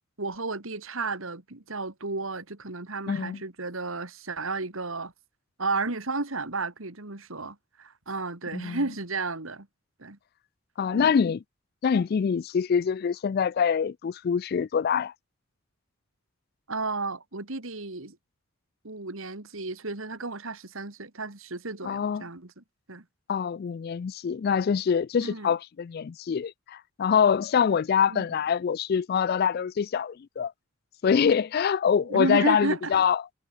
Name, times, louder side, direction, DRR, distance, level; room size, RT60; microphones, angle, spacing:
voice 1, 0.2-5.1 5.6-9.7 10.0-10.2 10.9-11.1 16.7-18.2 18.8-23.0 25.2-25.5 28.1-28.3 32.0-32.9, right 3 dB, 70° right, 2.4 m, -33 dB
voice 2, 3.1-3.4 8.5-8.8 10.8-11.4 11.8-15.1 21.8-22.2 23.3-30.5 31.0-33.2, left 7 dB, 45° left, 0.3 m, -25 dB
head